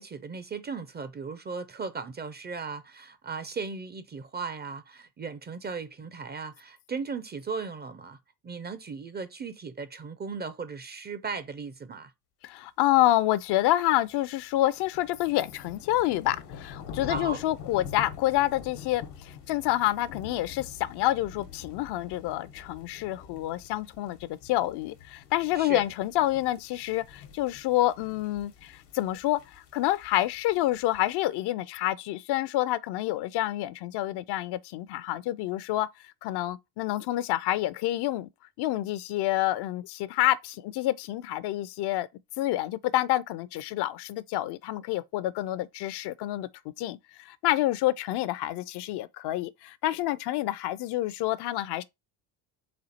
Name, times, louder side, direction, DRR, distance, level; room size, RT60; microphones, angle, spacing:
voice 1, 0.0-8.2 8.4-12.1 17.1-17.4 25.5-25.8, right 5 dB, 20° right, 0.5 m, -37 dB
voice 2, 12.4-35.9 36.2-38.3 38.6-42.1 42.4-46.5 46.8-51.8, left 15 dB, 55° left, 0.5 m, -28 dB
sound 1, 13.6-31.2, left 7 dB, 80° left, 1.1 m, -46 dB
4.3 x 2.4 x 4.1 m
hypercardioid pair, 65°, 49 cm